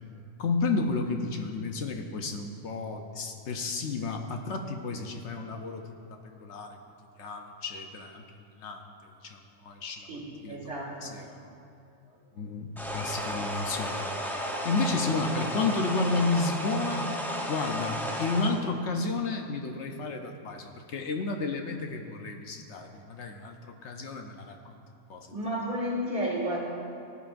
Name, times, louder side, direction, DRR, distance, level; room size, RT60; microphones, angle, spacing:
voice 1, 0.4-5.8 6.1-6.8 7.2-8.2 8.6-10.1 10.4-10.6 11.0-11.5 12.4-17.1 17.5-24.7 25.1-25.3, left 3 dB, 70° left, 4 dB, 1.0 m, -32 dB
voice 2, 10.1-11.2 12.4-12.5 25.3-26.6, equal, 45° right, -4 dB, 2.2 m, -32 dB
sound 1, 12.8-18.6, equal, ahead, 0.6 m, -33 dB
17.0 x 10.0 x 2.5 m, 2.5 s
omnidirectional pair, 1.3 m